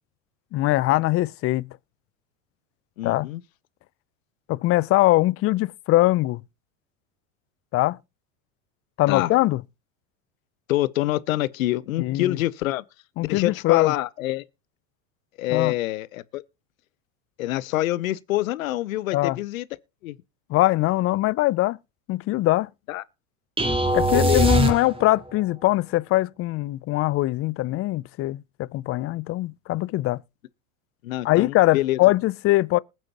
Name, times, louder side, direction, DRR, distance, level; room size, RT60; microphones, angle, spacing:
voice 1, 0.5-1.8 3.0-3.3 4.5-6.4 7.7-8.0 9.0-9.6 12.0-12.4 13.2-13.9 15.5-15.7 19.1-19.4 20.5-21.8 22.1-22.7 23.9-30.2 31.2-32.8, left 17 dB, 35° left, 0.5 m, -22 dB
voice 2, 3.0-3.4 9.1-9.3 10.7-12.8 13.3-14.4 15.4-16.4 17.4-19.7 20.0-20.2 22.9-23.0 24.1-24.8 31.0-32.0, left 16 dB, 80° left, 0.9 m, -26 dB
sound 1, 23.6-25.3, right 1 dB, 15° right, 2.8 m, -22 dB
20.5 x 7.6 x 2.9 m
hypercardioid pair, 95°, 40 cm